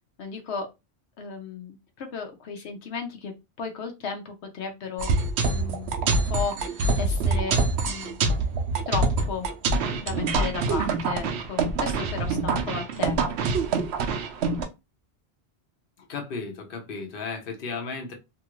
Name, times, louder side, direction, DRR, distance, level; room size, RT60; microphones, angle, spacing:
voice 1, 0.2-0.7 1.2-3.3 3.6-5.1 5.5-7.6 7.9-8.2 8.9-9.5 10.0-13.1, left 5 dB, 85° left, 4 dB, 1.0 m, -34 dB
sound 1, 5.0-14.6, right 3 dB, 90° right, 0.9 m, -25 dB
voice 2, 16.0-18.1, left 4 dB, 60° left, 3 dB, 0.9 m, -34 dB
2.8 x 2.4 x 3.0 m, 0.24 s
omnidirectional pair, 1.1 m